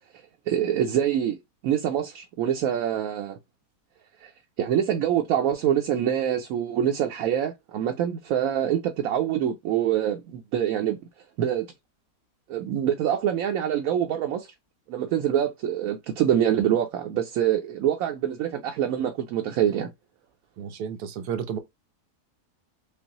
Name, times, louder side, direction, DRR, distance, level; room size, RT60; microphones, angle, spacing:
voice 1, 0.5-1.4 1.6-3.4 4.2-4.3 4.6-11.0 11.4-11.7 12.5-14.5 14.9-19.9, right 10 dB, 70° right, 0.9 m, -25 dB
voice 2, 20.6-21.6, right 8 dB, 85° right, 1.3 m, -32 dB
5.3 x 2.0 x 2.9 m
omnidirectional pair, 1.7 m